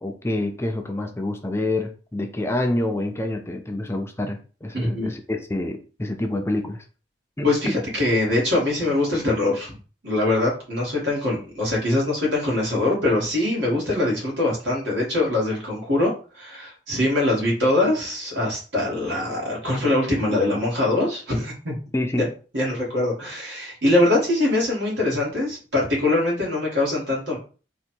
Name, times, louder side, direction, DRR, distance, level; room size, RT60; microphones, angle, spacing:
voice 1, 0.0-6.8 7.4-7.8 21.9-22.3, left 1 dB, 15° left, 5 dB, 0.5 m, -27 dB
voice 2, 4.7-5.2 7.4-9.7 10.0-21.8 22.2-22.3 22.5-27.4, left 2 dB, 75° right, -3 dB, 2.2 m, -23 dB
3.9 x 2.6 x 4.5 m, 0.37 s
head